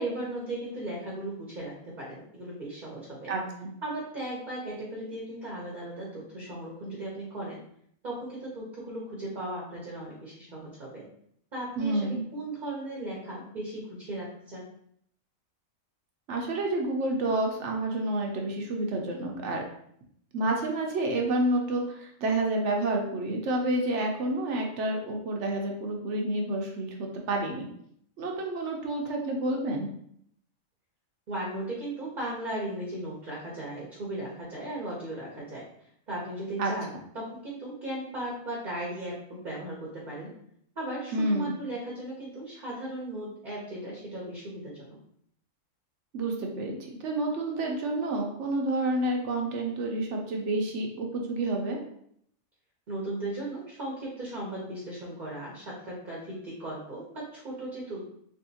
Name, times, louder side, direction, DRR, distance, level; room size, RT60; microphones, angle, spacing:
voice 1, 0.0-3.3 3.8-7.6 8.0-11.1 11.5-14.6 31.3-35.7 36.1-40.3 40.8-45.0 52.9-58.0, right 1 dB, 40° right, -4 dB, 0.8 m, -37 dB
voice 2, 3.3-3.7 11.8-12.2 16.3-19.6 20.3-27.7 28.2-29.9 36.6-36.7 41.1-41.5 46.1-51.8, right 2 dB, 65° right, 1 dB, 0.9 m, -29 dB
3.5 x 3.4 x 2.7 m, 0.69 s
omnidirectional pair, 1.4 m